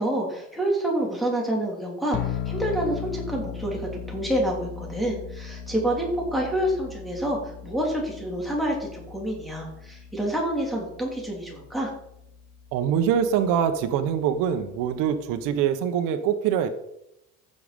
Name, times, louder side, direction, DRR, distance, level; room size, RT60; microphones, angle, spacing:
voice 1, 0.0-11.9, right 1 dB, ahead, -3 dB, 3.3 m, -28 dB
sound 1, 2.1-15.6, left 8 dB, 40° left, 1.0 m, -39 dB
voice 2, 12.7-16.7, right 8 dB, 90° right, 9 dB, 1.2 m, -24 dB
15.0 x 7.0 x 5.3 m, 0.80 s
cardioid pair, 160°, 31 cm